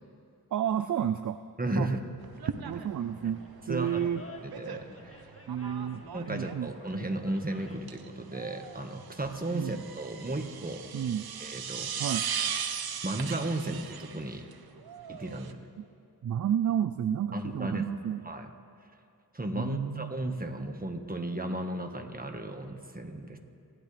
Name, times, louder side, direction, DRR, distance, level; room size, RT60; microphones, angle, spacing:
voice 1, 0.5-1.4 1.8-1.9 2.6-4.2 5.5-6.7 9.5-9.8 10.9-11.2 12.0-12.3 15.8-15.9 16.2-18.2 19.5-20.1, right 9 dB, 50° right, 12 dB, 0.5 m, -31 dB
voice 2, 1.6-2.1 2.4-2.9 3.7-4.0 4.4-5.2 6.1-10.9 11.4-11.9 13.0-14.4 15.1-15.7 17.3-17.8 18.2-18.5 19.3-23.4, right 1 dB, 25° right, 5 dB, 1.6 m, -34 dB
sound 1, 2.2-15.5, right 7 dB, 75° right, 0.8 m, -39 dB
Animal, 2.9-8.0, left 2 dB, 35° left, 1.8 m, -50 dB
28.0 x 11.5 x 3.4 m, 2.4 s
cardioid pair, 45°, 38 cm